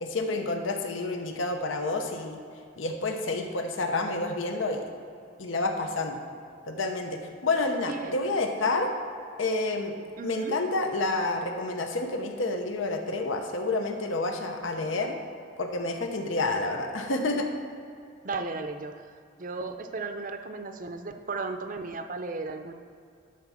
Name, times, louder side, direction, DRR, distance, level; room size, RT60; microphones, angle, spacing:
voice 1, 0.0-2.4 2.8-4.8 5.4-6.2 6.7-8.9 9.4-10.0 10.2-15.1 15.6-17.5, left 2 dB, 80° left, 4 dB, 0.8 m, -29 dB
voice 2, 7.9-8.2 10.2-10.6 14.8-15.2 18.2-22.7, right 3 dB, 40° right, 7 dB, 0.5 m, -36 dB
12.0 x 4.4 x 6.0 m, 2.5 s
head